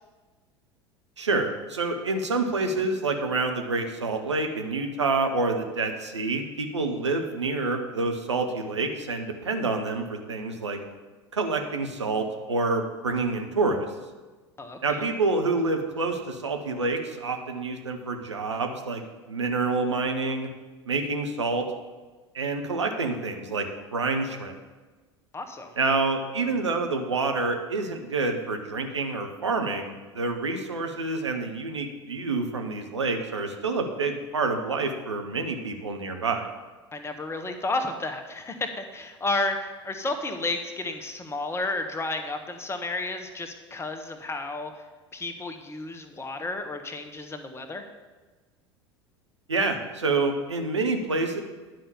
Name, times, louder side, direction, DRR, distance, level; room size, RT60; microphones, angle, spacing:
voice 1, 1.2-10.8 11.3-13.9 14.8-20.5 20.9-21.7 22.3-24.5 25.8-36.5 49.5-51.4, right 3 dB, 80° right, 4 dB, 1.0 m, -27 dB
voice 2, 14.6-15.0 25.3-25.7 36.9-44.7 45.1-47.8, left 2 dB, 15° left, 6 dB, 1.1 m, -32 dB
10.5 x 5.6 x 7.0 m, 1.3 s
figure-of-eight pair, 75°, 15 cm